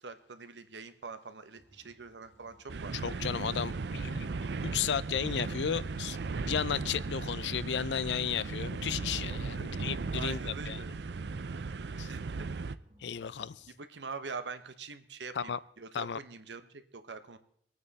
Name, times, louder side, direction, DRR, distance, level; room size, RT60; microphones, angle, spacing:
voice 1, 0.0-2.9 9.5-9.6 10.1-10.9 12.1-12.2 13.8-17.4, right 4 dB, 90° right, 1.0 m, -44 dB
sound 1, 1.5-13.7, right 1 dB, 30° right, 1.6 m, -64 dB
sound 2, 2.7-12.8, right 4 dB, 70° right, 0.5 m, -36 dB
voice 2, 2.9-4.3 4.6-6.2 6.4-10.8 12.0-12.1 13.0-13.6 15.3-15.6 15.9-16.2, left 8 dB, 90° left, 0.5 m, -34 dB
23.0 x 9.3 x 4.1 m
head